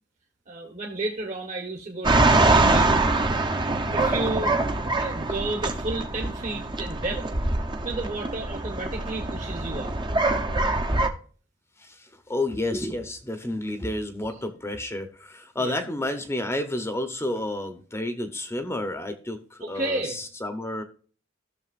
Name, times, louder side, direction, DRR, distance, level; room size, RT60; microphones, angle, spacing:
voice 1, 0.5-3.0 3.5-4.6 4.9-7.2 7.8-9.9 15.6-15.8 19.6-20.2, right 2 dB, 40° right, 1 dB, 1.2 m, -32 dB
sound 1, 2.0-11.1, right 2 dB, 25° right, 0.7 m, -24 dB
voice 2, 11.8-20.8, left 1 dB, 15° left, 8 dB, 0.8 m, -30 dB
14.5 x 6.5 x 2.5 m, 0.41 s
head